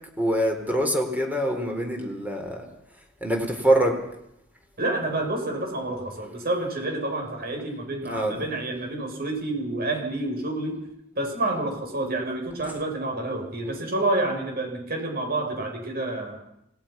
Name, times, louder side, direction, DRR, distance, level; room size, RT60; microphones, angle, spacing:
voice 1, 0.2-2.6 3.2-3.9 8.0-8.4, right 1 dB, 10° right, 3 dB, 4.2 m, -24 dB
voice 2, 4.8-10.8 11.1-16.4, right 2 dB, 50° right, 2 dB, 8.0 m, -28 dB
29.0 x 19.0 x 6.0 m, 0.78 s
head